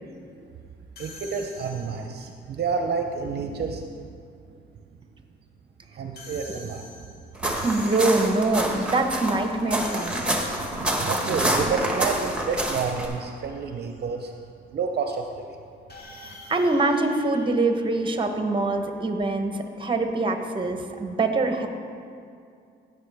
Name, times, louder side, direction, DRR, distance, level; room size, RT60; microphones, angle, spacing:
sound 1, 1.0-2.2 6.2-8.7 9.8-11.1 15.9-18.4, left 1 dB, 55° left, 1.9 m, -45 dB
voice 1, 1.0-4.1 5.9-6.9 7.5-7.6 10.3-14.3 14.7-15.7 20.7-20.8, right 5 dB, 55° right, 4 dB, 0.6 m, -30 dB
sound 2, 7.4-13.1, right 1 dB, 5° right, 1.5 m, -27 dB
voice 2, 7.6-10.2 16.2-21.7, right 2 dB, 25° right, 6 dB, 1.0 m, -24 dB
15.0 x 6.7 x 3.5 m, 2.4 s
cardioid pair, 90°, 20 cm